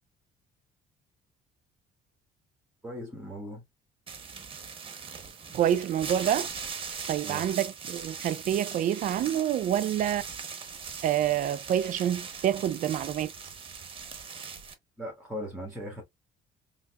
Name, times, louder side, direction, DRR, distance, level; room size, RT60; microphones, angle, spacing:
voice 1, 2.8-3.6 7.2-7.5 15.0-16.0, equal, 5° right, 1.7 m, -38 dB
sound 1, 4.1-14.7, right 6 dB, 30° right, 1.0 m, -40 dB
voice 2, 5.5-6.5 7.1-10.2 11.0-13.3, right 10 dB, 50° right, 0.4 m, -27 dB
3.9 x 2.8 x 2.3 m
cardioid pair, 110°, 17 cm